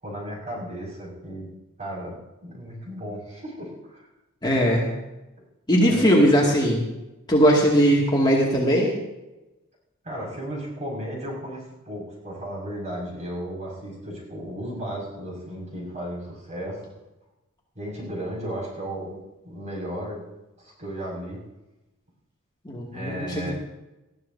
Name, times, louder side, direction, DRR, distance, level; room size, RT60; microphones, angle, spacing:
voice 1, 0.0-1.5 1.8-4.1 4.7-4.8 5.8-6.2 10.0-16.8 17.8-19.2 19.4-20.2 20.6-21.4 22.9-23.5, equal, 35° right, -3 dB, 5.9 m, -34 dB
voice 2, 4.4-4.9 5.7-6.8 7.3-9.0 22.6-23.5, equal, 20° left, -3 dB, 2.3 m, -19 dB
20.0 x 14.0 x 2.8 m, 1.0 s
head